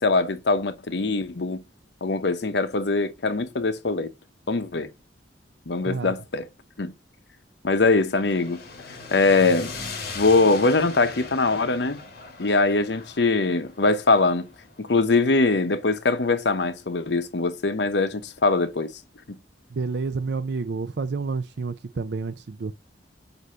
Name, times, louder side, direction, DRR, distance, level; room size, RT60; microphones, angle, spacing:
voice 1, 0.0-1.6 2.0-4.1 4.5-4.9 5.7-6.5 6.8-6.9 7.6-8.6 9.1-9.7 10.1-12.0 12.4-14.4 14.8-18.9, left 3 dB, 80° left, 0.8 m, -22 dB
sound 1, 8.0-16.2, left 3 dB, 60° left, 2.0 m, -40 dB
voice 2, 19.7-22.7, right 4 dB, 70° right, 0.5 m, -29 dB
8.0 x 2.7 x 5.5 m
head